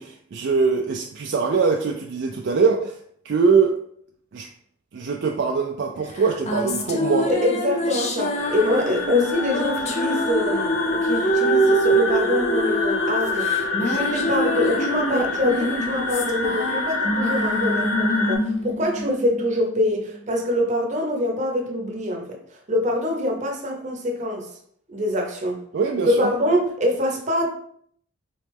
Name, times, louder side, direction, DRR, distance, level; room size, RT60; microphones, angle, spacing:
voice 1, 0.0-3.0 3.2-3.7 4.3-4.5 4.9-7.3 25.7-26.3, right 5 dB, 55° right, 1 dB, 0.3 m, -22 dB
sound 1, 6.2-19.8, right 1 dB, 35° left, 0.5 m, -25 dB
voice 2, 7.2-22.4 22.7-24.5 24.9-25.6 26.1-27.5, left 1 dB, 35° right, 1 dB, 0.7 m, -24 dB
sound 2, 8.4-18.4, left 3 dB, 85° left, 0.9 m, -27 dB
3.8 x 3.1 x 3.4 m, 0.65 s
head